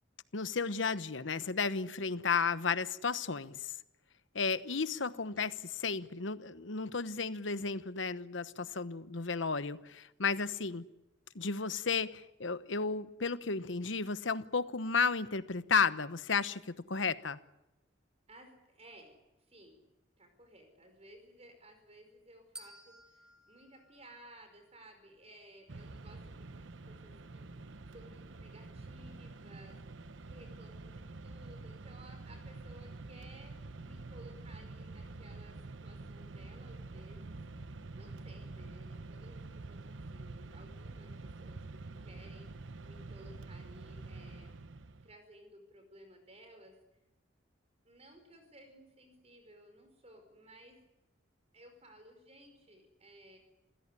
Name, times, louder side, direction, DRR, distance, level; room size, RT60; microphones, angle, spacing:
voice 1, 0.3-3.7 4.3-5.5 5.8-10.8 11.3-17.4, left 5 dB, 75° left, 14 dB, 1.1 m, -33 dB
voice 2, 18.3-19.2 19.5-19.8 20.2-27.5 27.9-29.8 30.2-37.4 37.9-44.6 45.0-46.8 47.8-50.8 51.5-53.4, right 1 dB, 30° right, 6 dB, 5.2 m, -57 dB
sound 1, 22.6-24.8, right 1 dB, 5° right, 1.4 m, -55 dB
Mechanisms, 25.7-45.1, right 3 dB, 70° right, 0.9 m, -47 dB
27.5 x 16.0 x 9.9 m, 0.91 s
head